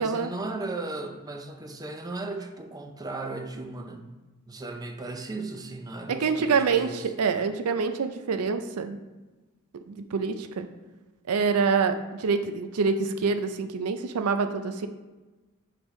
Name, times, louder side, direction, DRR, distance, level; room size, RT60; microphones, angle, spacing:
voice 1, 0.0-4.2 4.5-7.1, right 2 dB, 15° right, 5 dB, 0.5 m, -36 dB
voice 2, 6.1-9.0 9.9-10.7 11.3-14.9, right 5 dB, 90° right, 8 dB, 0.5 m, -26 dB
9.5 x 3.4 x 3.1 m, 1.2 s
head